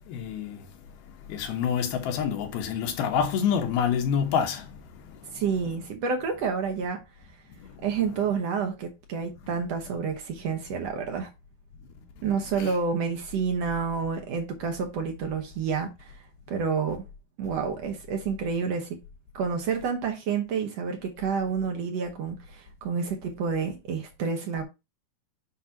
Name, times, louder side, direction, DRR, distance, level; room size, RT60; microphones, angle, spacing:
voice 1, 0.1-0.7 1.1-5.4 7.6-7.9 12.6-12.7, left 7 dB, 85° left, 3.2 m, -28 dB
voice 2, 5.3-7.0 7.8-11.3 12.2-16.2 16.5-17.0 17.4-19.0 19.3-24.6, right 6 dB, 70° right, 1.6 m, -29 dB
8.1 x 2.8 x 5.8 m
omnidirectional pair, 4.3 m